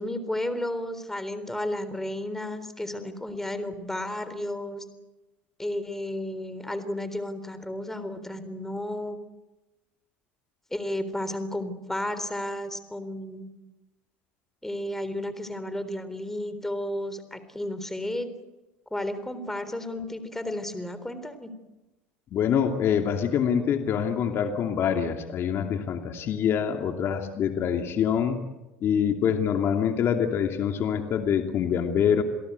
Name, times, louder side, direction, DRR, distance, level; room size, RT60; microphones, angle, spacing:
voice 1, 0.0-4.8 5.6-9.2 10.7-13.5 14.6-18.3 18.9-21.5, left 1 dB, 5° left, 11 dB, 3.7 m, -33 dB
voice 2, 22.3-28.4 28.8-32.2, left 8 dB, 45° left, 5 dB, 2.7 m, -25 dB
28.5 x 17.5 x 8.3 m, 1.1 s
supercardioid pair, 100°, 6 cm